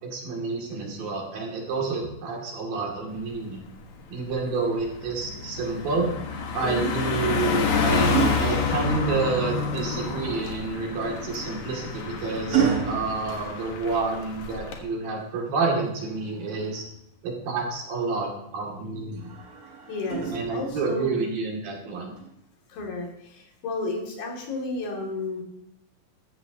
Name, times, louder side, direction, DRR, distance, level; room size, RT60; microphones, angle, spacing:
voice 1, 0.0-3.6 4.1-6.1 6.5-16.8 17.2-19.3 20.3-22.1, right 4 dB, 75° right, -2 dB, 4.3 m, -29 dB
Car passing by, 3.2-3.4 3.8-14.8, left 4 dB, 60° left, 2.6 m, -29 dB
sound 1, 7.0-9.4 11.0-14.2 16.0-17.1 19.1-20.9 22.2-22.4, right 7 dB, 50° right, 1.1 m, -31 dB
voice 2, 19.9-21.2 22.7-25.4, left 2 dB, 80° left, 0 dB, 4.5 m, -32 dB
15.0 x 13.5 x 2.9 m, 0.79 s
omnidirectional pair, 4.2 m